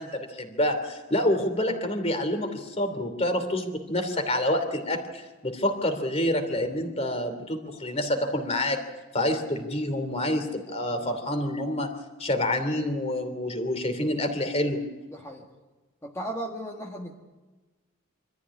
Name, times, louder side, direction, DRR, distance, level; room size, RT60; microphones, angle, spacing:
voice 1, 0.0-8.8 9.1-11.9 12.2-14.8, left 1 dB, 30° left, 7 dB, 2.9 m, -27 dB
voice 2, 10.9-11.2 15.1-15.5 16.0-17.1, right 1 dB, 15° left, -1 dB, 1.7 m, -36 dB
25.0 x 14.0 x 9.7 m, 1.2 s
head